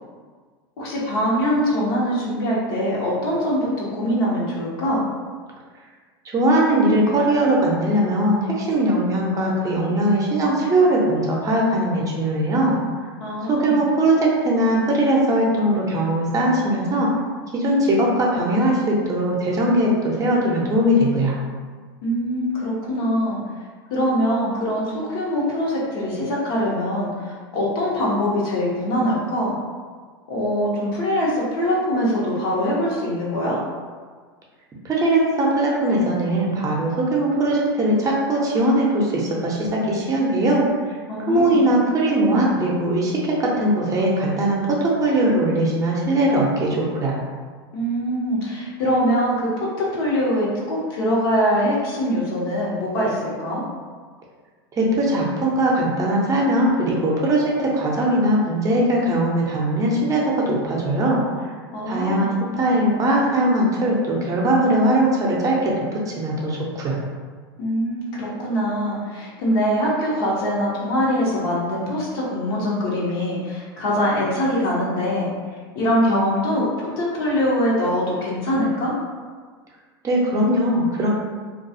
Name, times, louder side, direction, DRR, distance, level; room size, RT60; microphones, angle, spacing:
voice 1, 0.8-5.1 13.2-13.8 22.0-23.4 23.9-29.5 30.3-33.6 41.1-41.6 47.7-49.5 49.8-53.6 61.7-62.3 67.6-75.3 75.7-76.7 77.0-78.9, equal, 70° left, -5 dB, 0.9 m, -23 dB
voice 2, 6.2-12.8 13.5-17.1 17.5-21.3 34.8-47.2 54.8-61.2 61.8-67.0 80.0-81.1, right 1 dB, 25° right, -3 dB, 0.6 m, -20 dB
2.3 x 2.3 x 2.6 m, 1.5 s
hypercardioid pair, 105°, 13 cm